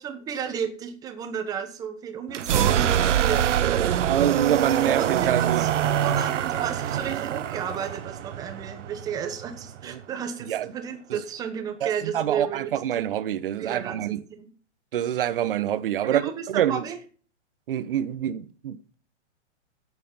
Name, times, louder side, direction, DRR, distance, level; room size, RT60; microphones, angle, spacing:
voice 1, 0.0-4.0 4.8-12.7 13.5-14.0 14.3-14.5 16.0-17.0, right 8 dB, 10° right, 1.1 m, -33 dB
sound 1, 2.3-10.0, right 10 dB, 80° right, 1.0 m, -25 dB
voice 2, 4.0-5.6 9.8-10.0 10.4-10.7 11.1-11.2 11.8-14.2 14.9-16.2 16.5-16.8 17.7-18.9, right 11 dB, 50° right, 1.0 m, -26 dB
11.0 x 8.5 x 5.4 m
hypercardioid pair, 170°, 36 cm